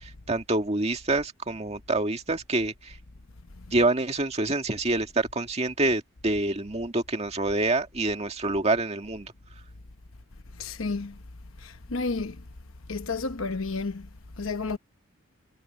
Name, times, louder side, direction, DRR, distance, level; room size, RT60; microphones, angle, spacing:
voice 1, 0.0-2.9 3.7-9.3, right 2 dB, 30° right, 2.0 m, -27 dB
voice 2, 10.6-11.2 11.6-12.4 12.9-14.1 14.4-14.8, left 3 dB, 70° left, 1.0 m, -31 dB
head